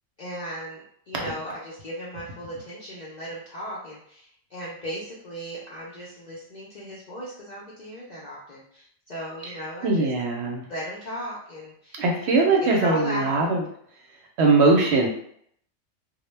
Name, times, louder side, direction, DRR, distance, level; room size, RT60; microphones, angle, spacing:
voice 1, 0.2-10.0 10.7-13.5, equal, 60° left, -6 dB, 0.4 m, -36 dB
voice 2, 9.8-10.6 12.0-13.6 14.4-15.1, right 3 dB, 65° right, 1 dB, 0.8 m, -20 dB
2.1 x 2.1 x 3.1 m, 0.66 s
omnidirectional pair, 1.3 m